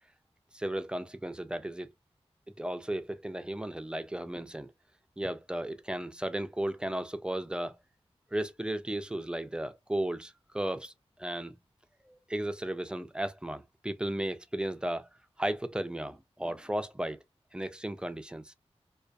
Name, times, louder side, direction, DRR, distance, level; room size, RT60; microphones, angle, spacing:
voice 1, 0.5-1.9 2.6-4.7 5.2-7.8 8.3-10.9 11.2-11.6 12.1-15.1 15.4-17.2 17.5-18.5, right 1 dB, 10° right, 0.3 m, -35 dB
2.5 x 2.2 x 2.2 m
wide cardioid pair, 95°, 11 cm